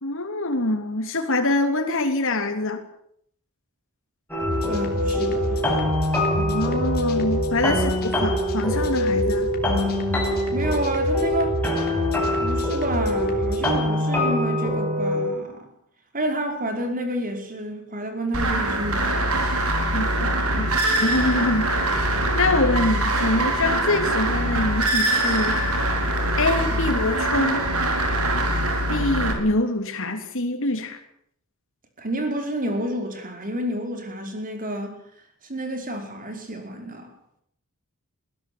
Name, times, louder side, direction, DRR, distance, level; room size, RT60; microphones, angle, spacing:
voice 1, 0.0-2.8 6.3-9.5 19.9-22.0 22.3-25.6 26.4-27.6 28.9-31.0, left 2 dB, 65° left, 5 dB, 3.2 m, -25 dB
sound 1, 4.3-15.3, left 1 dB, 10° left, 6.8 m, -24 dB
sound 2, 4.4-13.7, equal, 45° left, 3.9 m, -30 dB
voice 2, 4.6-5.6 10.5-11.6 12.4-15.7 16.1-19.5 26.7-26.8 32.0-35.0 35.5-37.1, right 1 dB, 40° right, 5 dB, 5.2 m, -29 dB
sound 3, 18.3-29.3, right 1 dB, 80° right, 4.6 m, -23 dB
21.5 x 16.0 x 8.8 m, 0.70 s
head